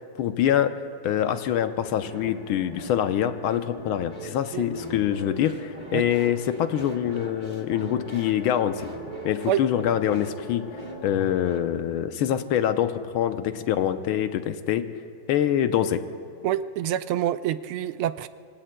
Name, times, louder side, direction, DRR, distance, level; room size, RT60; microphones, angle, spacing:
voice 1, 0.2-8.9 9.2-10.7 11.0-14.9 15.3-16.0, left 10 dB, 75° left, 9 dB, 1.5 m, -25 dB
sound 1, 1.2-11.8, right 2 dB, 25° right, 1.5 m, -42 dB
sound 2, 2.0-11.4, left 3 dB, 45° left, 0.6 m, -43 dB
voice 2, 16.4-18.3, right 11 dB, 80° right, 12 dB, 1.4 m, -26 dB
26.5 x 25.0 x 2.2 m, 2.7 s
omnidirectional pair, 2.4 m